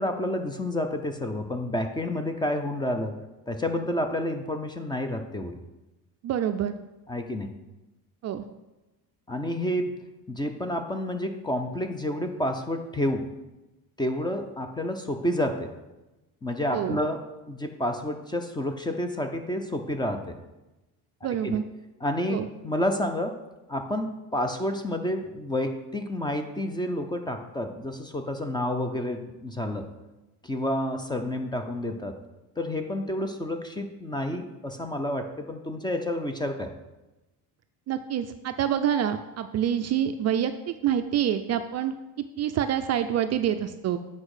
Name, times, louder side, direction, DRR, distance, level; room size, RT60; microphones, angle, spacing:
voice 1, 0.0-3.2 3.5-5.6 7.1-7.5 9.3-10.0 10.3-13.3 14.0-15.7 16.4-20.4 21.4-21.6 22.0-23.4 23.7-29.9 30.4-32.1 32.6-36.7, left 1 dB, 10° left, 6 dB, 0.6 m, -29 dB
voice 2, 6.2-6.7 8.2-8.4 16.7-17.0 21.2-21.6 22.3-22.5 37.9-44.0, right 9 dB, 40° right, 8 dB, 0.4 m, -27 dB
8.4 x 5.4 x 4.9 m, 1.0 s
cardioid pair, 135°, 40 cm